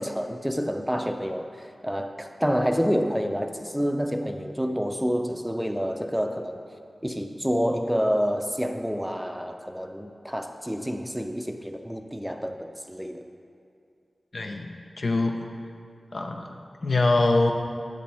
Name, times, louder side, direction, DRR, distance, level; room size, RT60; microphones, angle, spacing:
voice 1, 0.0-6.6 7.0-13.2, equal, 5° right, 5 dB, 0.5 m, -28 dB
voice 2, 14.3-15.4 16.1-16.5 16.8-17.5, left 2 dB, 70° left, 3 dB, 0.6 m, -24 dB
7.9 x 7.4 x 3.4 m, 2.4 s
cardioid pair, 50°, 0 cm